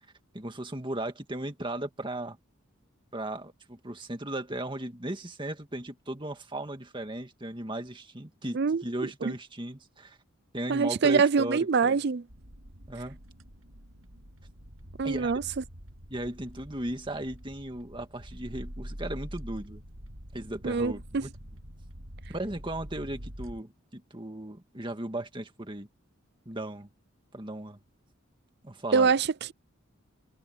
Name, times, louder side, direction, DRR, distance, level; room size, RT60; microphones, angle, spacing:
voice 1, 0.3-2.4 3.1-10.2 10.5-12.0 12.9-13.2 15.0-15.3 16.1-19.8 20.3-21.3 22.3-25.9 26.5-26.9 27.3-27.8 28.6-29.1, right 1 dB, 25° right, 2.0 m, -36 dB
voice 2, 8.5-9.3 10.7-12.2 15.0-15.4 20.6-21.3 28.9-29.5, right 5 dB, 50° right, 0.5 m, -25 dB
sound 1, 12.3-23.6, equal, 80° right, 7.6 m, -45 dB
head